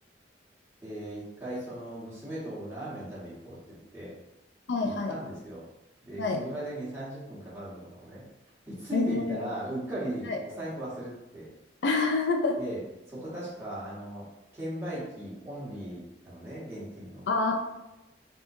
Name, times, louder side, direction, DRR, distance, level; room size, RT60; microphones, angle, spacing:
voice 1, 0.8-3.6 3.9-4.1 4.8-5.6 6.0-8.2 8.7-11.5 12.6-12.8 13.1-14.2 14.5-17.2, right 1 dB, 15° right, -8 dB, 1.2 m, -37 dB
voice 2, 4.7-5.1 6.2-6.4 8.9-9.4 10.3-10.4 11.8-12.6 17.3-17.6, left 3 dB, 70° left, 3 dB, 0.4 m, -27 dB
3.5 x 2.9 x 2.6 m, 0.95 s
head